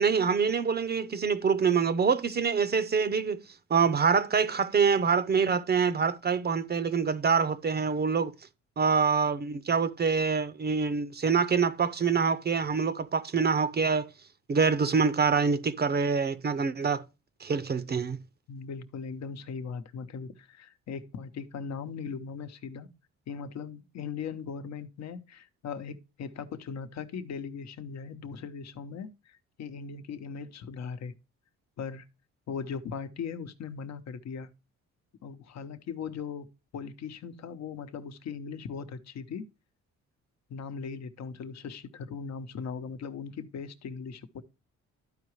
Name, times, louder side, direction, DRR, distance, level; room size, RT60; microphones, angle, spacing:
voice 1, 0.0-3.4 3.7-8.3 8.8-14.1 14.5-17.0 17.4-18.2, right 5 dB, 35° right, 0.6 m, -25 dB
voice 2, 18.5-22.9 23.3-31.1 31.8-32.0 32.5-34.5 35.2-36.5 36.7-39.5 40.5-44.4, left 6 dB, 60° left, 0.9 m, -39 dB
12.5 x 4.8 x 3.1 m
cardioid pair, 90°, 30 cm